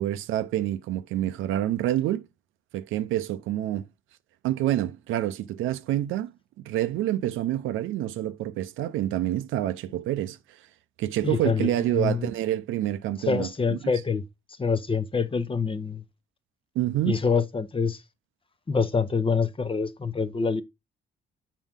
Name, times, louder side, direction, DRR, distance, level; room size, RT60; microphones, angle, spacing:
voice 1, 0.0-2.3 2.7-3.8 4.4-6.3 6.6-10.4 11.0-14.0 16.8-17.2, right 13 dB, 85° right, 0.6 m, -27 dB
voice 2, 11.2-12.3 13.3-14.2 14.6-16.0 17.1-18.0 18.7-20.6, left 5 dB, 25° left, 0.9 m, -26 dB
7.4 x 4.5 x 3.6 m
cardioid pair, 90°, 20 cm